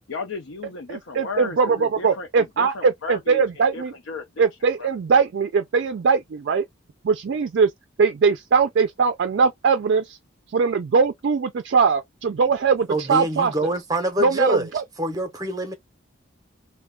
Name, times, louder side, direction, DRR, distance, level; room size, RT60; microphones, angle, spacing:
voice 1, 0.1-4.5 4.8-4.9, left 3 dB, 75° left, 0.6 m, -35 dB
voice 2, 0.9-3.9 4.4-6.6 7.0-7.7 8.0-10.2 10.5-13.5 14.2-14.8, right 5 dB, 60° right, 0.3 m, -21 dB
voice 3, 12.9-14.7 15.0-15.7, equal, 20° right, 0.7 m, -25 dB
2.3 x 2.2 x 3.5 m
head